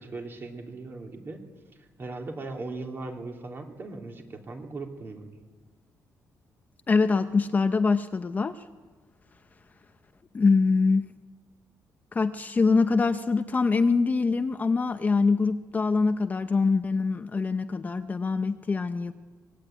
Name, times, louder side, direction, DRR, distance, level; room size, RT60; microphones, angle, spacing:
voice 1, 0.0-1.4 1.8-5.3, right 3 dB, 35° right, 3 dB, 3.0 m, -38 dB
voice 2, 6.9-8.6 10.3-11.1 12.1-19.1, left 4 dB, 25° left, 9 dB, 0.7 m, -24 dB
24.5 x 20.0 x 9.0 m, 1.4 s
cardioid pair, 155°, 7 cm